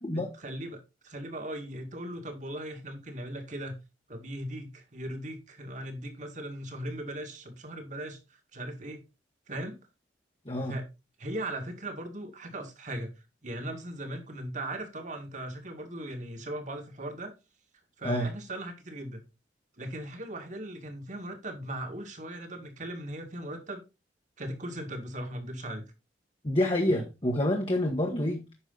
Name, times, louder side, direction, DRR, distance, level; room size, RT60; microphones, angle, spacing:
voice 1, 0.1-3.8 4.1-8.2 8.5-9.0 9.5-9.8 10.6-10.9 11.2-13.1 13.4-17.3 18.0-19.2 19.8-23.8 24.4-25.8 26.9-27.0, right 1 dB, 45° right, 2.1 m, -38 dB
voice 2, 10.4-10.8 18.0-18.3 26.4-28.6, left 1 dB, 30° left, 1.3 m, -28 dB
9.8 x 6.3 x 4.0 m
head